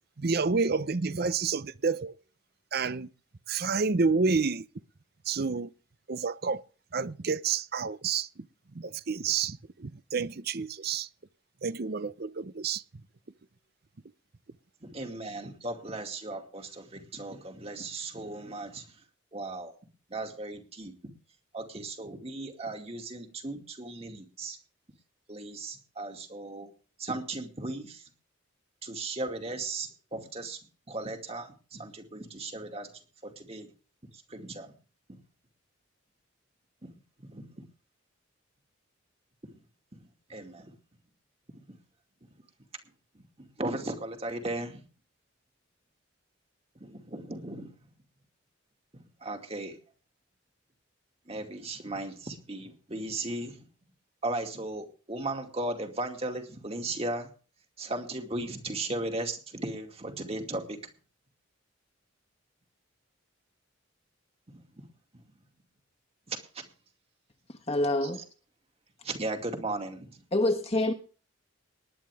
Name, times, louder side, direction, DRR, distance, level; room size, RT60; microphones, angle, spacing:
voice 1, 0.2-2.1 2.7-3.1 3.5-4.7 5.3-5.7 6.1-6.6 6.9-8.5 8.7-11.1 11.6-12.8, right 4 dB, 50° right, 0.7 m, -29 dB
voice 2, 14.8-18.8 19.3-19.7 20.1-21.1 21.5-24.6 25.3-26.7 27.0-28.0 28.8-30.6 30.9-32.9 33.2-33.7 34.1-34.7 35.1-35.2 37.2-37.6 39.4-39.5 40.3-40.7 41.7-41.8 43.1-44.8 46.8-47.9 48.9-49.8 51.3-53.6 54.2-57.3 57.8-60.8 64.5-64.9 65.1-65.2 66.3-66.7 68.0-68.1 69.0-70.2, right 2 dB, 30° right, 2.3 m, -37 dB
voice 3, 67.5-68.3 70.3-70.9, left 1 dB, 30° left, 1.3 m, -27 dB
19.5 x 10.5 x 3.5 m
head